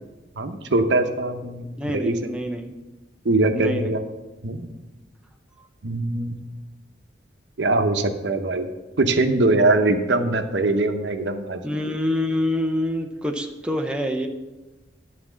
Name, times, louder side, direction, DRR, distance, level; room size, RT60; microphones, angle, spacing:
voice 1, 0.4-2.3 3.2-4.0 4.4-4.7 5.8-6.4 7.6-8.7 9.0-11.6, right 2 dB, 75° right, 7 dB, 0.8 m, -22 dB
voice 2, 1.8-2.7 3.5-3.9 11.6-14.3, left 1 dB, 5° right, 2 dB, 0.6 m, -26 dB
11.0 x 4.3 x 7.3 m, 1.1 s
head